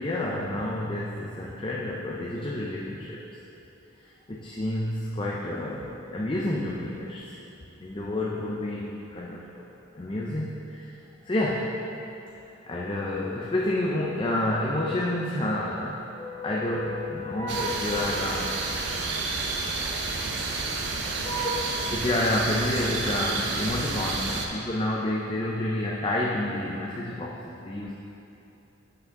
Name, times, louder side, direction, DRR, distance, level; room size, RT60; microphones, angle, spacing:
voice 1, 0.0-3.3 4.0-7.4 7.8-9.7 9.9-11.0 11.2-11.8 12.7-18.5 21.2-27.9, left 1 dB, 25° left, -3 dB, 0.4 m, -29 dB
sound 1, 17.5-24.5, right 3 dB, 60° right, 0.6 m, -30 dB
7.7 x 5.9 x 3.6 m, 2.9 s
head